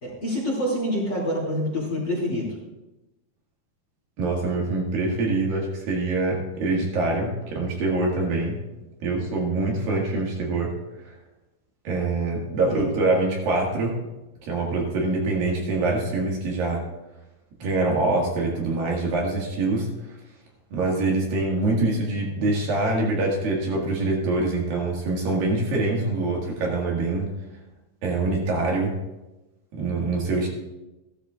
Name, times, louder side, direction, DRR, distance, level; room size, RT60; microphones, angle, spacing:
voice 1, 0.0-2.6 12.6-12.8, equal, 30° left, -5 dB, 2.8 m, -27 dB
voice 2, 4.2-8.6 9.0-10.7 11.0-11.1 11.9-14.0 14.4-16.8 17.6-19.9 20.7-27.3 28.0-29.0 29.7-30.5, right 2 dB, 65° right, -2 dB, 3.6 m, -24 dB
15.5 x 13.0 x 2.5 m, 1.0 s
omnidirectional pair, 4.6 m